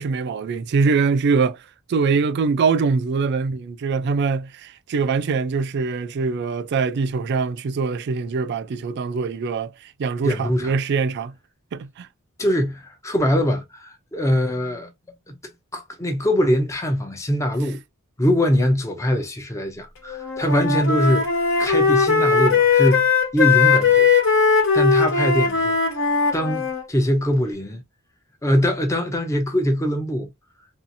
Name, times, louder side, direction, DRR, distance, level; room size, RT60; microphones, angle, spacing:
voice 1, 0.0-1.6 1.9-11.3 11.7-12.1, right 4 dB, 50° right, 0.3 m, -23 dB
voice 2, 10.2-10.7 12.4-14.9 15.3-15.4 15.7-17.8 18.2-21.3 21.6-24.1 24.7-25.7 26.3-27.8 28.4-30.3, equal, 15° left, 0.6 m, -22 dB
Wind instrument woodwind instrument, 20.1-26.8, left 5 dB, 65° left, 1.0 m, -19 dB
2.7 x 2.4 x 2.6 m
head